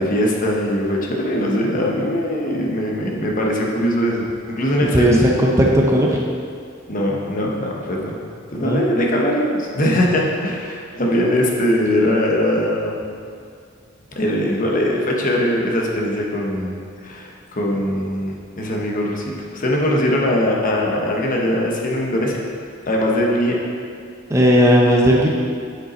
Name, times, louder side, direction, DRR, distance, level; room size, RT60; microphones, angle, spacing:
voice 1, 0.0-5.3 6.9-8.2 8.5-13.0 14.2-22.3 22.9-23.6, left 1 dB, 40° left, -1 dB, 1.0 m, -21 dB
voice 2, 4.9-6.2 8.6-8.8 24.3-25.3, equal, 15° right, -1 dB, 0.6 m, -15 dB
7.8 x 5.4 x 4.3 m, 2.3 s
head